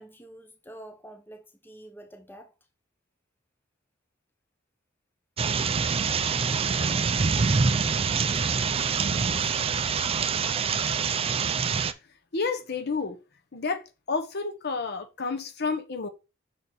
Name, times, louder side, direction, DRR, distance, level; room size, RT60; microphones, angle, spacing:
voice 1, 0.0-2.5 11.0-11.1, right 1 dB, 10° left, 0.7 m, -47 dB
sound 1, 5.4-11.9, right 5 dB, 30° right, 0.4 m, -25 dB
voice 2, 9.3-9.7 12.3-13.2 13.5-16.1, left 4 dB, 55° left, 1.0 m, -31 dB
6.3 x 4.0 x 4.2 m
head